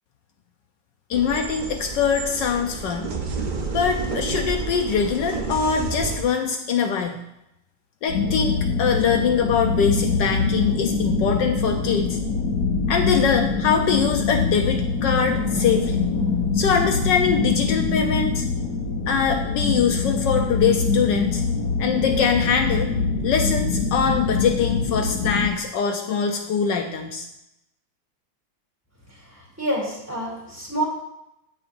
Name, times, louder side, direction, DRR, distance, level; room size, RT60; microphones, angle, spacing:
voice 1, 1.1-3.1 3.7-7.2 8.0-12.2 12.9-16.1 16.5-18.5 19.1-21.4 21.8-22.9 23.2-27.3, left 6 dB, 75° left, 4 dB, 1.3 m, -23 dB
sound 1, 1.1-6.2, right 4 dB, 50° right, 0.5 m, -30 dB
sound 2, 8.1-25.5, left 4 dB, 60° left, 1.6 m, -24 dB
voice 2, 29.6-30.8, right 1 dB, 10° right, -4 dB, 2.5 m, -27 dB
15.0 x 6.0 x 2.6 m, 0.84 s
omnidirectional pair, 2.0 m